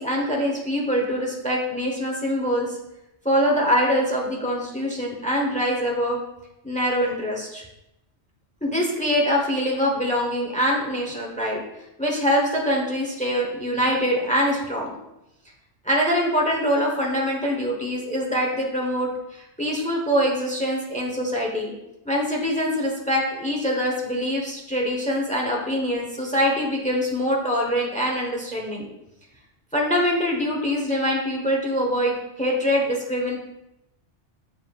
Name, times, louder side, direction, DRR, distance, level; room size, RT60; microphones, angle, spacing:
voice 1, 0.0-2.8 3.2-6.2 6.6-7.6 8.6-11.6 12.0-15.0 15.8-21.7 22.0-28.9 29.7-33.4, equal, 5° left, -1 dB, 1.0 m, -24 dB
7.4 x 5.4 x 2.4 m, 0.88 s
omnidirectional pair, 1.2 m